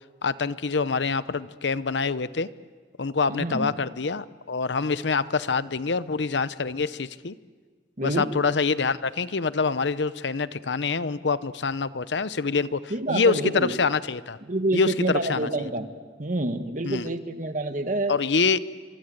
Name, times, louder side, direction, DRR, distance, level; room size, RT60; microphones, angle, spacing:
voice 1, 0.2-2.5 3.0-7.3 8.0-14.4 14.7-15.5 16.8-17.1 18.1-18.6, left 4 dB, 75° left, 15 dB, 0.8 m, -26 dB
voice 2, 3.3-3.7 8.0-8.3 12.9-13.7 14.4-15.9 16.2-18.1, right 2 dB, 45° right, 7 dB, 1.7 m, -27 dB
28.5 x 25.5 x 7.9 m, 1.5 s
head